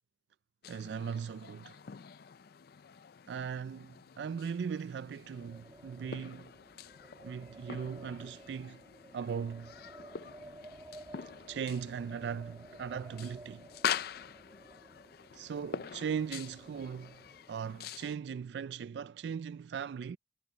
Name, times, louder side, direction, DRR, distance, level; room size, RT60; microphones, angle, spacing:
sound 1, 0.6-18.2, left 8 dB, 55° left, 0.4 m, -44 dB
voice 1, 0.7-1.8 3.3-6.5 7.2-8.8 9.1-9.7 11.5-13.7 15.3-17.2 17.5-20.2, right 7 dB, 65° right, 0.3 m, -38 dB
Wind, 5.2-17.8, right 2 dB, 15° right, 1.9 m, -54 dB
head